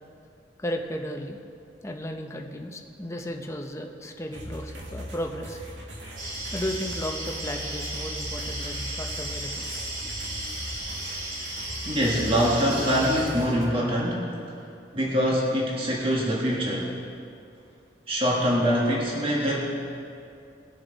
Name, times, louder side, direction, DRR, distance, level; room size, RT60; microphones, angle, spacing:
voice 1, 0.6-1.4 1.8-5.6 6.5-9.9, equal, 15° left, 3 dB, 0.8 m, -34 dB
sound 1, 4.3-13.7, equal, 75° right, 1.8 m, -39 dB
sound 2, 6.2-13.2, right 1 dB, 50° right, 3.4 m, -35 dB
voice 2, 11.8-14.2 14.9-16.9 18.1-19.7, equal, 30° right, -4 dB, 1.5 m, -24 dB
20.5 x 7.1 x 4.1 m, 2.5 s
head